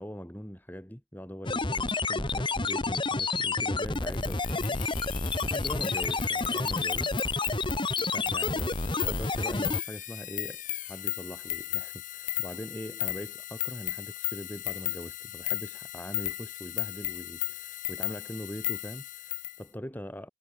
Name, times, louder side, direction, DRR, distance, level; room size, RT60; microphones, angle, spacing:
voice 1, 0.0-7.2 8.1-20.3, equal, 10° left, 3.0 m, -42 dB
sound 1, 1.5-9.8, left 3 dB, 25° left, 1.4 m, -29 dB
sound 2, 3.9-19.6, left 14 dB, 45° left, 4.3 m, -36 dB
head